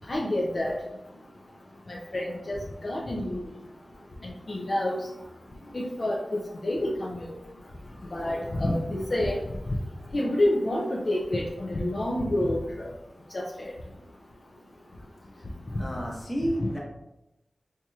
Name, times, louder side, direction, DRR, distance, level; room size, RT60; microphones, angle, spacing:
voice 1, 0.1-0.8 1.9-2.6 2.8-3.4 4.2-5.0 5.7-7.3 8.1-9.4 10.1-12.6 13.3-13.4 16.6-16.7, left 1 dB, 50° left, -4 dB, 0.5 m, -28 dB
voice 2, 15.8-16.8, equal, 20° left, -3 dB, 1.1 m, -31 dB
4.5 x 2.9 x 2.3 m, 0.91 s
wide cardioid pair, 95°, 0 cm